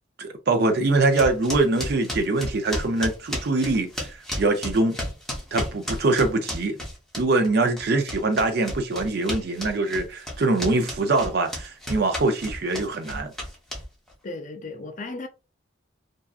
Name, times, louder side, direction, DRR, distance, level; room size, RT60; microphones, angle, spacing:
voice 1, 0.2-5.0 5.5-6.8 7.2-13.3, right 2 dB, 55° right, 0.5 m, -23 dB
sound 1, 1.1-7.5 7.8-14.1, equal, ahead, 0.7 m, -33 dB
voice 2, 14.2-15.3, left 3 dB, 40° left, 0.4 m, -35 dB
2.6 x 2.3 x 2.3 m
head